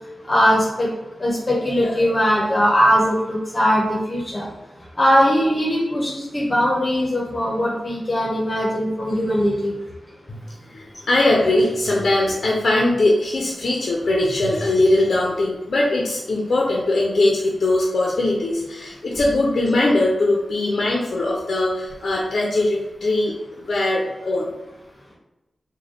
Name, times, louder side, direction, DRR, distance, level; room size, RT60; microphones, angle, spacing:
voice 1, 0.3-0.9 1.2-4.4 5.0-9.7, equal, 35° left, -3 dB, 0.8 m, -20 dB
voice 2, 10.3-24.5, left 2 dB, 70° left, -2 dB, 0.5 m, -21 dB
3.3 x 2.2 x 3.8 m, 1.0 s
cardioid pair, 60°, 0 cm